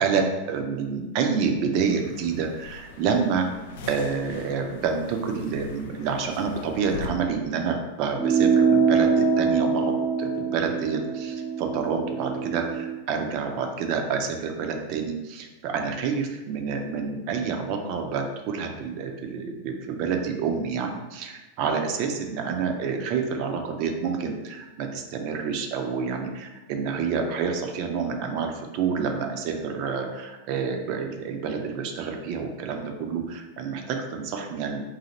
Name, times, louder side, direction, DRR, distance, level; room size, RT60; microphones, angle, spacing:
voice 1, 0.0-3.5 3.9-34.8, right 5 dB, 45° right, 4 dB, 0.6 m, -28 dB
sound 1, 1.8-7.1, left 4 dB, 55° left, 0.5 m, -42 dB
sound 2, 8.2-13.0, right 6 dB, ahead, 0.6 m, -23 dB
4.1 x 2.8 x 4.1 m, 1.1 s
figure-of-eight pair, 90°, 0 cm